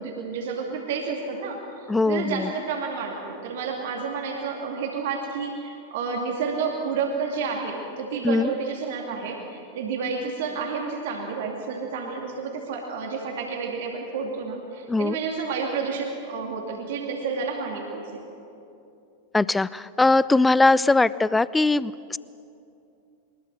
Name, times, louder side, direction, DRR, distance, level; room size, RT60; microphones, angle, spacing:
voice 1, 0.0-18.2, right 5 dB, 55° right, 1 dB, 2.5 m, -30 dB
voice 2, 1.9-2.5 8.2-8.5 14.9-15.2 19.3-22.2, left 3 dB, 10° left, 19 dB, 0.4 m, -21 dB
23.0 x 21.0 x 6.8 m, 2.7 s
figure-of-eight pair, 90°, 0 cm